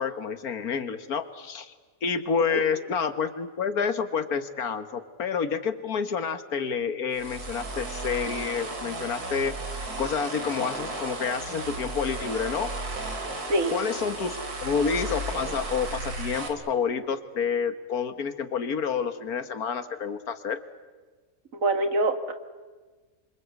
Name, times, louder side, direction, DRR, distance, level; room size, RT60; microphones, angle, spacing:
voice 1, 0.0-1.7 2.0-9.6 10.0-12.7 13.7-20.6, left 6 dB, 75° left, 11 dB, 1.9 m, -29 dB
sound 1, 7.1-16.5, right 2 dB, 90° right, 3.5 m, -34 dB
voice 2, 13.5-13.8 21.5-22.3, right 2 dB, 60° right, 8 dB, 2.1 m, -25 dB
27.5 x 25.0 x 8.3 m, 1.4 s
omnidirectional pair, 1.6 m